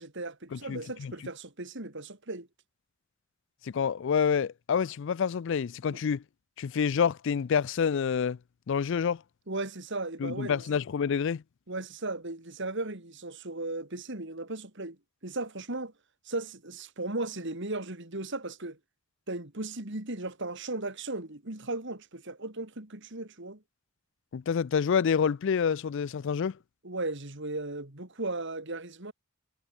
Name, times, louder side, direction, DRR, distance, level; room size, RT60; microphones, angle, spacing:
voice 1, 0.0-2.5 5.9-6.0 9.5-10.6 11.7-15.0 15.2-15.9 16.2-18.8 19.3-23.6 26.8-29.1, right 2 dB, 60° right, 3.3 m, -36 dB
voice 2, 0.5-1.1 3.6-6.2 6.6-8.4 8.7-9.2 10.2-11.4 24.3-26.6, left 6 dB, 60° left, 0.4 m, -28 dB
head